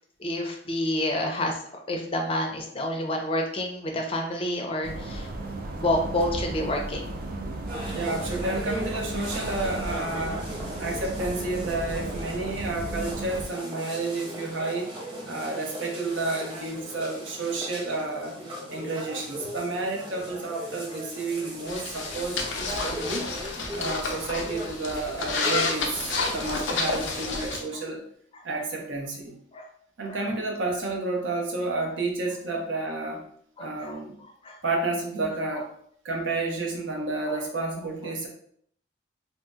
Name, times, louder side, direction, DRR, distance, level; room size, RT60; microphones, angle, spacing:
voice 1, 0.2-1.6 1.9-5.3 5.8-7.1 21.7-21.8 22.4-22.6 24.1-24.2 29.5-29.7 30.1-30.2 33.6-34.0 34.4-34.5, left 1 dB, 30° left, 2 dB, 0.5 m, -29 dB
sound 1, 4.8-13.5, right 2 dB, 50° right, 0.3 m, -35 dB
sound 2, 7.7-27.5, right 1 dB, 25° right, 0.8 m, -38 dB
voice 2, 7.9-10.5 10.8-14.9 15.3-18.3 18.7-23.3 23.7-28.0 28.4-29.4 30.0-33.2 33.6-34.2 34.6-35.7 36.0-38.3, right 2 dB, 85° right, 0 dB, 0.7 m, -30 dB
sound 3, 21.7-27.6, left 3 dB, 80° left, 0.5 m, -30 dB
2.7 x 2.0 x 3.4 m, 0.64 s
head